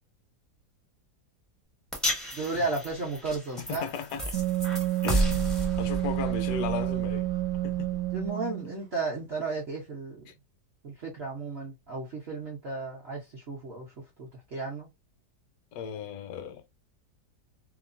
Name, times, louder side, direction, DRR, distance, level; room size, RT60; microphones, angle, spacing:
sound 1, 1.9-8.3, equal, ahead, 0.3 m, -33 dB
voice 1, 2.3-3.9 8.1-10.2 10.8-13.9 14.2-14.9, right 3 dB, 55° right, 0.7 m, -34 dB
voice 2, 3.7-4.4 5.0-5.4 5.8-7.3 7.6-7.9 10.3-10.4 15.7-16.6, left 6 dB, 70° left, 1.0 m, -35 dB
Wind instrument woodwind instrument, 4.3-8.8, right 15 dB, 90° right, 1.2 m, -29 dB
2.9 x 2.0 x 2.4 m
omnidirectional pair, 1.8 m